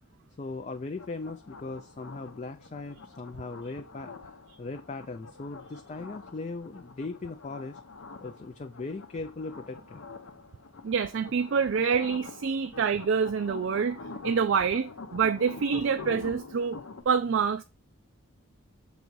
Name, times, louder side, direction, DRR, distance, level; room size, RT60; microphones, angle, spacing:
voice 1, 0.4-7.8 8.2-10.0, left 3 dB, 30° left, 0.4 m, -39 dB
sound 1, 1.0-17.0, left 3 dB, 70° left, 0.8 m, -45 dB
voice 2, 10.8-14.0 14.2-16.8 17.1-17.6, right 6 dB, 60° right, 0.4 m, -26 dB
7.0 x 4.0 x 4.5 m
head